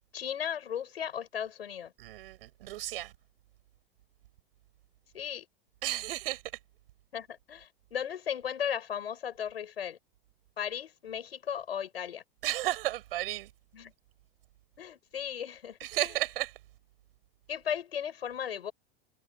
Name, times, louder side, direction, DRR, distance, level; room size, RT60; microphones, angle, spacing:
voice 1, 0.1-1.9 5.1-5.4 7.1-10.0 10.6-12.2 13.7-13.9 14.8-16.1 17.5-18.7, left 9 dB, 90° left, 6.9 m, -36 dB
voice 2, 2.0-3.1 5.8-6.4 12.4-13.5 15.8-16.5, right 15 dB, 70° right, 6.5 m, -33 dB
hypercardioid pair, 110°, 29 cm